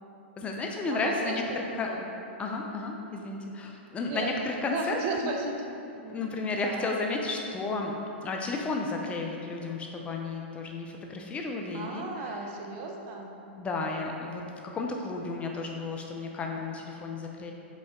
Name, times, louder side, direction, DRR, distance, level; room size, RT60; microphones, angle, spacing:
voice 1, 0.4-1.9 2.4-5.0 6.1-7.9 8.2-12.4 13.6-14.4 14.7-17.5, left 3 dB, 20° left, 1 dB, 0.6 m, -33 dB
voice 2, 0.9-1.4 1.9-2.1 4.1-4.3 4.7-5.5 5.9-6.8 11.7-13.3, right 3 dB, 40° right, 2 dB, 0.8 m, -35 dB
5.5 x 5.3 x 3.7 m, 2.7 s
hypercardioid pair, 125°, 6 cm